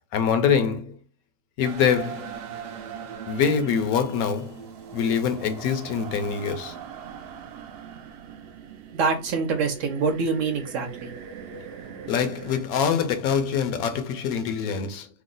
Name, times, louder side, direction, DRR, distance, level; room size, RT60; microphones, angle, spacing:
voice 1, 0.1-1.0 1.6-2.3 3.3-4.6 4.9-6.8 12.1-15.1, left 7 dB, 75° left, 1.0 m, -24 dB
sound 1, 1.6-12.6, right 7 dB, 90° right, 0.5 m, -40 dB
voice 2, 8.9-11.1, right 5 dB, 65° right, 0.9 m, -25 dB
3.1 x 2.0 x 3.7 m
omnidirectional pair, 1.6 m